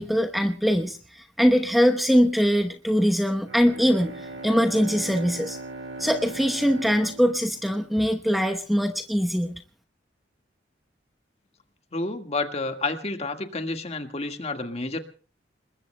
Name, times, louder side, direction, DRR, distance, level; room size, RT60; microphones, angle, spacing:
voice 1, 0.0-4.1 4.4-5.6 6.0-9.5, equal, ahead, 5 dB, 0.9 m, -22 dB
Bowed string instrument, 3.4-8.4, right 2 dB, 80° right, 1.9 m, -39 dB
voice 2, 11.9-15.0, left 3 dB, 35° left, 7 dB, 1.7 m, -30 dB
29.5 x 21.0 x 2.2 m, 0.37 s
head